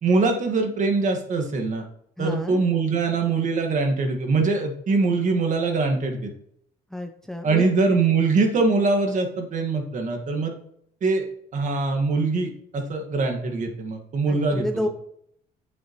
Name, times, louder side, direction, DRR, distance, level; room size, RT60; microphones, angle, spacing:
voice 1, 0.0-1.8 2.2-6.3 7.4-10.5 11.0-11.2 11.5-14.9, right 3 dB, 50° right, 4 dB, 1.8 m, -23 dB
voice 2, 2.2-2.6 6.9-7.7 14.3-14.9, left 1 dB, 5° left, 6 dB, 0.6 m, -30 dB
8.4 x 8.0 x 3.1 m, 0.69 s
cardioid pair, 110°, 17 cm